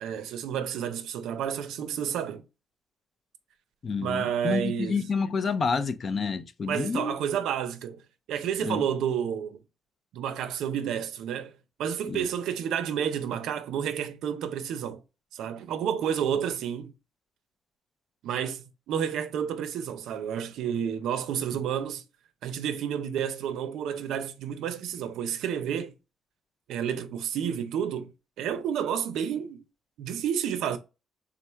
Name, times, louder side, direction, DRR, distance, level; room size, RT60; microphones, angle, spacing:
voice 1, 0.0-2.4 4.0-5.0 6.7-8.0 8.3-9.6 10.1-11.5 11.8-15.0 15.3-16.9 18.2-22.0 22.4-25.9 26.7-28.1 28.4-29.6 30.0-30.8, right 8 dB, 85° right, 0.5 m, -30 dB
voice 2, 3.8-7.1 8.6-8.8 12.1-12.3, left 5 dB, 40° left, 0.4 m, -29 dB
3.6 x 2.3 x 4.3 m
cardioid pair, 120°, 0 cm